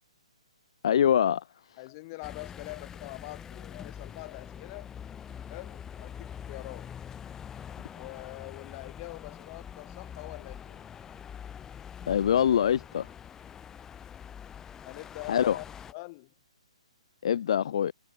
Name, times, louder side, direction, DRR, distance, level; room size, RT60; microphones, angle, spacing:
voice 1, 0.8-1.4 12.1-13.0 15.3-15.6 17.2-17.9, left 9 dB, 55° left, 0.8 m, -24 dB
voice 2, 1.8-4.9 5.5-6.9 7.9-10.9 14.9-16.3, left 24 dB, 35° left, 4.1 m, -44 dB
sound 1, 2.2-15.9, left 8 dB, 15° left, 2.4 m, -44 dB
hypercardioid pair, 135°, 4 cm